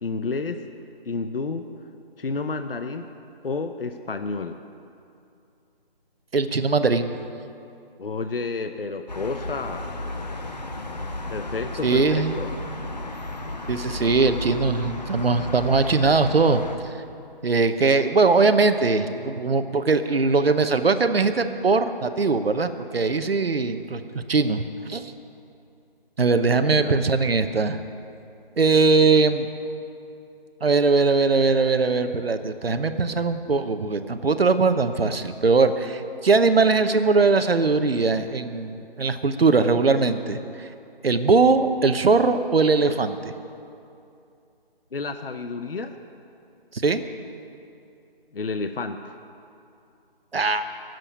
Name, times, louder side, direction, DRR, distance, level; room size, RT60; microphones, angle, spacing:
voice 1, 0.0-0.6 1.0-1.7 2.2-3.1 3.4-4.6 8.0-9.9 11.3-12.5 26.6-27.0 44.9-46.0 48.3-49.1, left 4 dB, 70° left, 8 dB, 0.8 m, -30 dB
voice 2, 6.3-7.1 11.8-12.4 13.7-16.9 17.4-24.6 24.9-25.0 26.2-27.8 28.6-29.5 30.6-40.7 41.0-43.3 46.7-47.0 50.3-50.6, right 4 dB, 75° right, 9 dB, 0.9 m, -21 dB
sound 1, 9.1-16.8, left 2 dB, 45° left, 0.9 m, -33 dB
12.0 x 7.7 x 10.0 m, 2.6 s
figure-of-eight pair, 170°, 30 cm